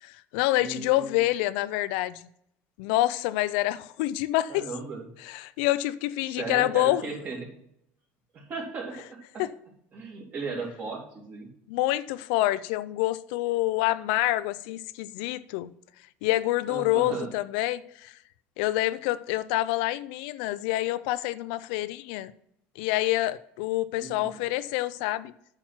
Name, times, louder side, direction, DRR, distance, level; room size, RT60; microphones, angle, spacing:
voice 1, 0.0-2.3 2.8-4.7 5.2-7.0 9.4-9.5 11.7-15.7 16.2-18.1 18.6-22.3 22.8-25.3, left 16 dB, 85° left, 0.4 m, -27 dB
voice 2, 0.6-1.2 4.5-5.0 6.2-7.5 8.3-9.0 9.3-9.4 9.9-11.5 16.7-17.3 24.0-24.3, right 4 dB, 35° right, 2.6 m, -36 dB
8.9 x 5.9 x 5.8 m
cardioid pair, 140°, 5 cm